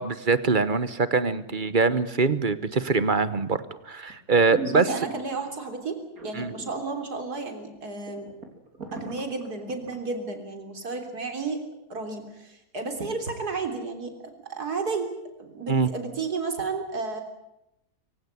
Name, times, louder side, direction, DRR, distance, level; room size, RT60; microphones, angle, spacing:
voice 1, 0.0-4.9 6.4-6.5 15.7-15.9, right 4 dB, 35° right, 14 dB, 1.1 m, -23 dB
sound 1, 4.1-4.2 4.5-5.5 6.2-6.9 7.2-7.3 7.7-7.8 8.1-9.9 10.4-10.5, right 1 dB, 70° right, 4.1 m, -38 dB
voice 2, 4.7-8.3 8.9-11.6 11.9-14.1 14.4-15.1 15.4-17.2, right 4 dB, 85° right, 5 dB, 4.0 m, -32 dB
24.5 x 16.5 x 9.7 m, 0.87 s
omnidirectional pair, 1.6 m